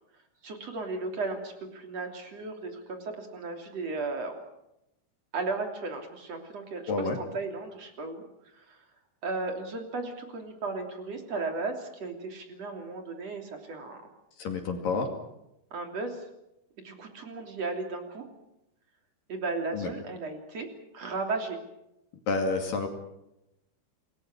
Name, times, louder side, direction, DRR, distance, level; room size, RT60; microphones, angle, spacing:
voice 1, 0.4-4.4 5.3-8.9 9.2-14.0 15.7-16.2 16.8-18.3 19.3-20.7 20.9-21.6, right 3 dB, 40° right, 4 dB, 3.7 m, -35 dB
voice 2, 14.4-15.1 19.7-19.9 22.3-22.9, left 3 dB, 55° left, 4 dB, 3.6 m, -29 dB
27.5 x 21.5 x 6.2 m, 0.85 s
omnidirectional pair, 5.4 m